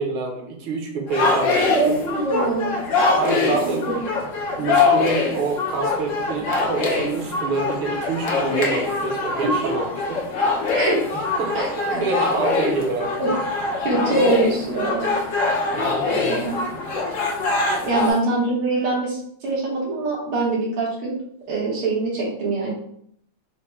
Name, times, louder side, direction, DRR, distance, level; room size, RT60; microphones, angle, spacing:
voice 1, 0.0-1.9 3.2-3.8 4.6-10.2 11.0-13.4 14.1-14.2 15.6-16.4, right 4 dB, 75° right, 1 dB, 1.6 m, -27 dB
sound 1, 1.1-18.1, left 3 dB, 70° left, 0.7 m, -23 dB
voice 2, 1.7-2.8 9.4-9.8 10.7-11.0 11.5-12.0 13.2-13.3 13.8-15.1 16.1-16.6 17.8-21.1 21.5-22.7, right 2 dB, 90° right, -5 dB, 2.0 m, -24 dB
4.5 x 2.1 x 4.5 m, 0.68 s
omnidirectional pair, 2.3 m